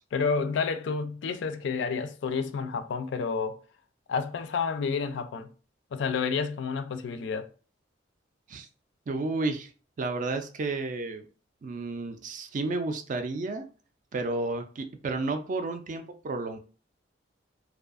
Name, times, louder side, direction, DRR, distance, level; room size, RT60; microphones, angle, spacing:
voice 1, 0.1-3.6 4.1-5.5 5.9-7.5, left 5 dB, 70° left, 0.3 m, -30 dB
voice 2, 9.1-9.7 10.0-11.3 11.6-13.7 14.1-16.6, right 3 dB, 40° right, 0.3 m, -31 dB
2.5 x 2.3 x 2.4 m
head